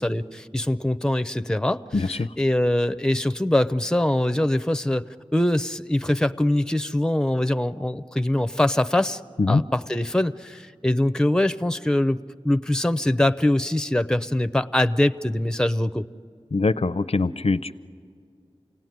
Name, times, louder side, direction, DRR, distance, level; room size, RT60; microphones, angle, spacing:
voice 1, 0.0-5.0 5.3-9.2 9.5-12.2 12.4-16.1, left 1 dB, 5° left, 12 dB, 0.6 m, -23 dB
voice 2, 1.9-2.3 9.4-9.6 16.5-17.7, left 3 dB, 65° left, 14 dB, 0.5 m, -22 dB
28.5 x 17.5 x 9.3 m, 2.1 s
wide cardioid pair, 40°, 12 cm